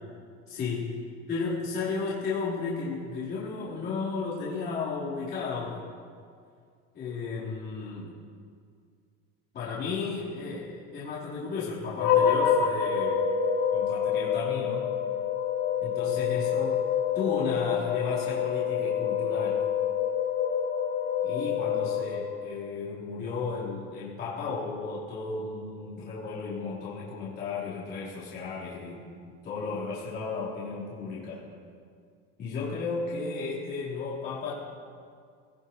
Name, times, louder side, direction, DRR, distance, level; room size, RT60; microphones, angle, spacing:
voice 1, 0.5-1.0 1.3-5.8 6.9-8.1 9.5-13.3 13.7-14.8 15.8-16.8 17.1-19.6 21.2-29.1 29.4-31.5 32.4-34.5, left 4 dB, 30° left, -9 dB, 4.4 m, -34 dB
sound 1, 12.0-22.5, left 8 dB, 70° left, 5.4 m, -27 dB
24.5 x 18.0 x 3.3 m, 2.2 s
cardioid pair, 160°, 30 cm